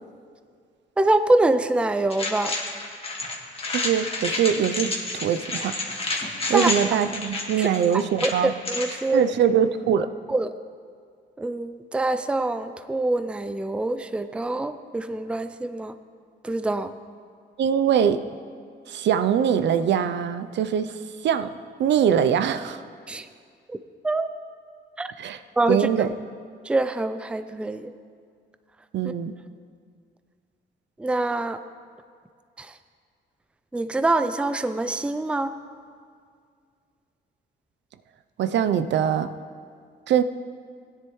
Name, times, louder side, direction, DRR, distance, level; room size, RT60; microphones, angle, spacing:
voice 1, 1.0-2.5 6.5-6.7 7.6-7.7 8.2-8.3 8.7-9.3 10.3-10.5 11.4-15.9 16.4-16.9 23.1-23.3 23.7-23.8 24.0-24.3 25.0-25.1 25.6-26.1 26.6-27.9 31.0-31.6 32.6-32.7 33.7-35.5, right 2 dB, 5° right, 11 dB, 0.4 m, -25 dB
sound 1, 2.1-9.0, left 2 dB, 30° left, 1.8 m, -30 dB
voice 2, 3.7-5.8 6.5-8.5 9.1-10.1 17.6-18.2 18.9-20.9 21.2-21.5 21.8-22.8 25.2-25.4 25.7-26.1 28.9-29.3 38.4-39.3 40.1-40.2, right 8 dB, 65° right, 10 dB, 0.5 m, -22 dB
16.5 x 10.0 x 3.1 m, 2.1 s
cardioid pair, 90°, 20 cm